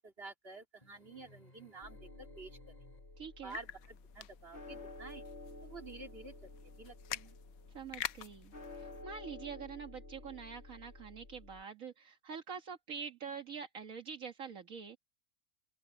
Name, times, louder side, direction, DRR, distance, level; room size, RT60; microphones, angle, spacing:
voice 1, 0.0-2.6 3.4-5.2 5.6-6.3 6.6-7.4, right 3 dB, 45° right, 3.2 m, -50 dB
sound 1, 0.8-3.4, left 1 dB, 30° left, 3.1 m, -63 dB
sound 2, 1.8-11.6, left 2 dB, 55° left, 2.2 m, -52 dB
voice 2, 3.2-3.6 7.7-15.0, right 6 dB, 75° right, 2.0 m, -46 dB
sound 3, 3.5-9.0, left 13 dB, 90° left, 1.1 m, -47 dB
open air
omnidirectional pair, 1.4 m